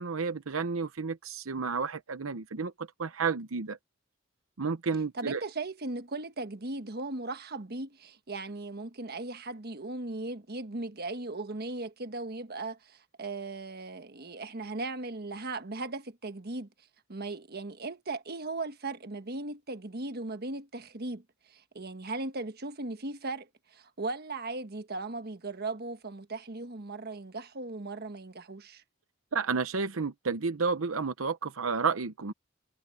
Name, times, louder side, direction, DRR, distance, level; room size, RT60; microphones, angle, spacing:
voice 1, 0.0-3.8 4.6-5.4 29.3-32.3, right 5 dB, 80° right, 0.8 m, -31 dB
voice 2, 5.1-16.7 17.1-28.8, right 2 dB, 50° right, 1.4 m, -38 dB
head